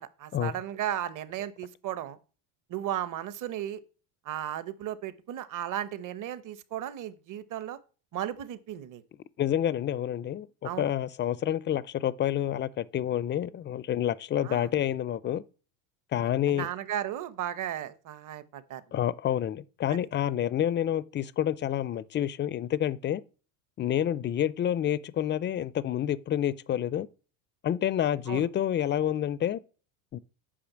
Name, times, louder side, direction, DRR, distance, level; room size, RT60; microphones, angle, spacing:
voice 1, 0.0-2.2 2.7-3.8 4.2-7.8 8.1-9.0 10.6-10.9 14.4-14.7 16.2-18.8 19.9-20.0 28.3-28.5, right 11 dB, 40° right, 1.1 m, -35 dB
voice 2, 9.4-15.4 16.1-16.7 18.9-23.2 23.8-27.1 27.6-29.6 30.1-30.2, left 10 dB, 25° left, 0.4 m, -28 dB
8.6 x 5.6 x 7.3 m
supercardioid pair, 110°, 47 cm